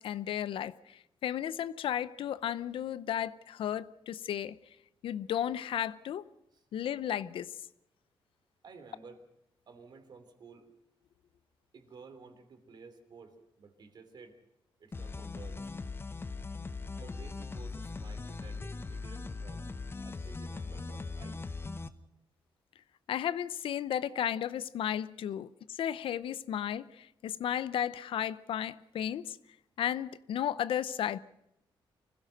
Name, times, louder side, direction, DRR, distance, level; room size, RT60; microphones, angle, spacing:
voice 1, 0.0-4.6 5.0-6.2 6.7-7.5 23.1-29.4 29.8-31.2, left 10 dB, 75° left, 0.7 m, -34 dB
voice 2, 8.6-9.2 9.7-10.7 11.7-14.4 14.8-15.6 17.0-19.6 20.0-21.4, right 4 dB, 50° right, 3.2 m, -53 dB
sound 1, 14.9-21.9, left 3 dB, 25° left, 0.9 m, -40 dB
25.0 x 16.0 x 6.5 m
cardioid pair, 110°, 9 cm